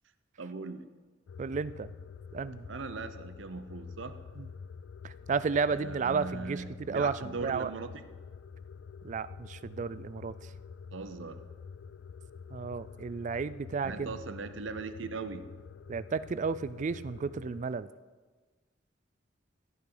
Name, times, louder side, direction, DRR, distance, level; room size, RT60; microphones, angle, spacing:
voice 1, 0.4-0.8 2.7-4.2 5.7-7.9 10.9-11.4 13.8-15.4, right 4 dB, 80° right, 10 dB, 0.7 m, -39 dB
sound 1, 1.3-17.7, left 6 dB, 70° left, 0.3 m, -47 dB
voice 2, 1.4-1.9 2.3-2.6 4.4-4.5 5.0-7.7 9.0-10.3 12.5-14.1 15.9-17.9, right 5 dB, 40° right, 16 dB, 0.3 m, -32 dB
14.5 x 8.8 x 3.9 m, 1.4 s
head